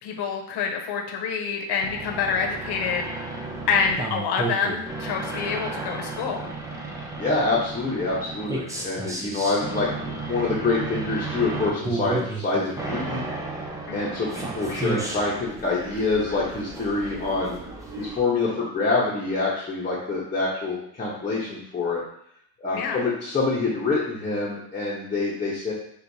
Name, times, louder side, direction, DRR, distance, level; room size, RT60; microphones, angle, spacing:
voice 1, 0.0-6.5 13.9-14.1 22.7-23.0, left 6 dB, 50° left, 2 dB, 1.0 m, -27 dB
sound 1, 1.8-18.2, right 3 dB, 5° right, 0.4 m, -33 dB
voice 2, 7.2-13.2 13.9-17.6 18.0-22.0 22.6-25.7, left 3 dB, 15° left, -7 dB, 0.9 m, -26 dB
6.3 x 2.6 x 2.7 m, 0.71 s
cardioid pair, 125°, 50 cm